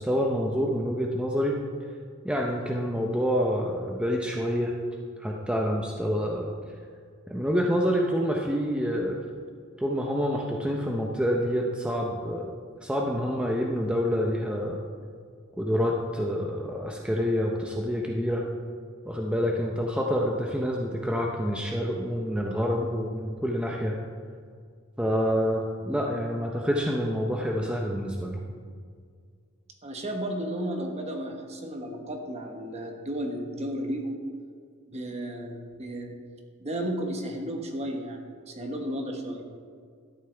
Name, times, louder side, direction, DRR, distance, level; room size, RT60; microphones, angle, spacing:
voice 1, 0.0-1.6 2.2-4.7 5.2-6.5 7.3-9.1 9.8-12.5 12.8-14.8 15.6-18.4 19.0-24.0 25.0-28.4, equal, 5° right, -1 dB, 0.7 m, -27 dB
voice 2, 29.8-34.2 34.9-36.2 36.6-38.2 38.5-39.4, right 1 dB, 30° right, 2 dB, 1.3 m, -33 dB
12.5 x 11.0 x 3.4 m, 2.1 s
head